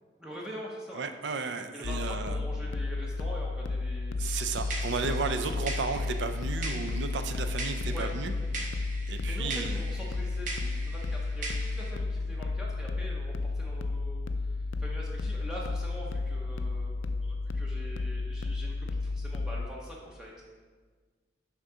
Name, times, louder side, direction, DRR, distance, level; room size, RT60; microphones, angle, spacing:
voice 1, 0.2-1.0 1.7-4.5 4.9-5.4 7.9-8.1 9.3-20.4, equal, 5° right, -4 dB, 0.6 m, -44 dB
voice 2, 0.9-2.4 4.2-8.3 9.1-9.8, right 4 dB, 65° right, 8 dB, 0.4 m, -34 dB
sound 1, 1.8-19.7, left 3 dB, 80° left, 0.4 m, -33 dB
sound 2, 4.2-11.9, right 3 dB, 40° right, 0.8 m, -41 dB
6.3 x 3.6 x 5.5 m, 1.5 s
head